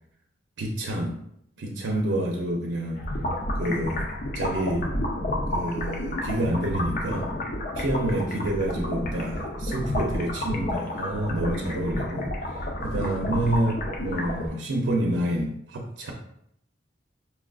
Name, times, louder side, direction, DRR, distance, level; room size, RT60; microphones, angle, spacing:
voice 1, 0.6-1.2 1.6-3.0 3.6-4.1 4.3-4.9 5.5-7.3 7.8-16.1, right 1 dB, 90° right, 0 dB, 0.5 m, -28 dB
sound 1, 3.0-14.5, left 1 dB, 45° left, 0.5 m, -30 dB
5.6 x 2.4 x 2.3 m, 0.72 s
head